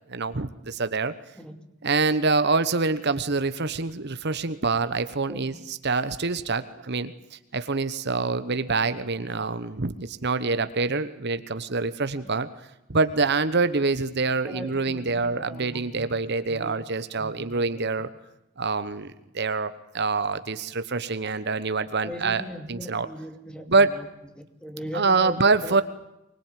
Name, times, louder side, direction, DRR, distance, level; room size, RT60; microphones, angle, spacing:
voice 1, 0.1-1.1 1.8-12.5 12.9-18.1 18.6-23.1 23.7-24.0 24.9-25.8, right 4 dB, 50° right, 12 dB, 1.1 m, -25 dB
voice 2, 1.4-1.7 5.3-5.5 9.2-9.3 12.2-12.3 14.4-16.2 16.5-16.8 17.2-17.9 22.0-24.1 24.3-25.8, left 1 dB, 5° left, 7 dB, 2.5 m, -39 dB
24.5 x 21.0 x 9.2 m, 0.88 s
head